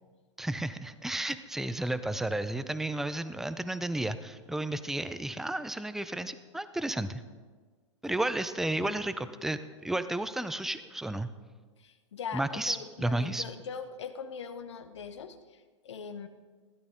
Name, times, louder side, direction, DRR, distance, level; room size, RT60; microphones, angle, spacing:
voice 1, 0.4-7.2 8.0-11.3 12.3-13.4, right 1 dB, ahead, 13 dB, 0.5 m, -32 dB
voice 2, 11.8-16.3, left 6 dB, 65° left, 9 dB, 0.9 m, -41 dB
16.0 x 11.5 x 3.7 m, 1.5 s
figure-of-eight pair, 105°, 16 cm